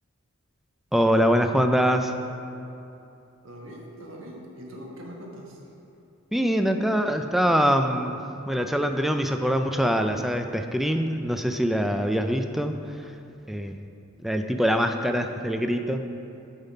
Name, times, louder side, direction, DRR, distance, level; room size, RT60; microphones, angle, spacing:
voice 1, 0.9-2.1 6.3-8.2 8.5-12.7 13.5-13.8 14.2-16.1, equal, ahead, 6 dB, 0.3 m, -23 dB
voice 2, 3.4-5.6, equal, 70° right, -2 dB, 1.4 m, -42 dB
7.0 x 5.5 x 5.5 m, 2.8 s
head